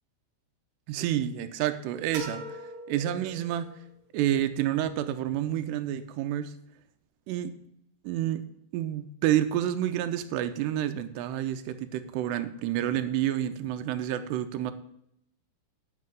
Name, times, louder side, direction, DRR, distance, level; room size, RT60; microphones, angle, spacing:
voice 1, 0.9-2.6 2.9-3.8 4.1-6.5 7.3-7.5 8.0-8.4 8.7-14.7, right 11 dB, 90° right, 9 dB, 2.8 m, -29 dB
sound 1, 2.1-3.9, equal, 60° right, 3.3 m, -41 dB
9.6 x 5.6 x 7.9 m, 0.74 s
omnidirectional pair, 4.8 m